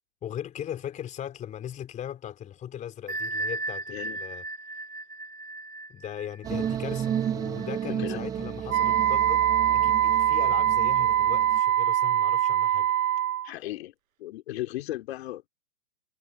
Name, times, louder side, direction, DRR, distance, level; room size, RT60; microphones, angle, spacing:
voice 1, 0.2-4.4 5.9-9.4 9.7-12.9, left 10 dB, 15° left, 3.6 m, -38 dB
Bell, 3.1-8.5, right 2 dB, 80° right, 7.2 m, -37 dB
sound 1, 6.4-11.6, right 9 dB, 10° right, 0.8 m, -32 dB
Wind instrument woodwind instrument, 8.7-13.5, right 11 dB, 60° right, 1.1 m, -23 dB
voice 2, 13.4-13.9 14.2-15.5, left 16 dB, 40° left, 3.4 m, -36 dB
figure-of-eight pair, 130°, 46 cm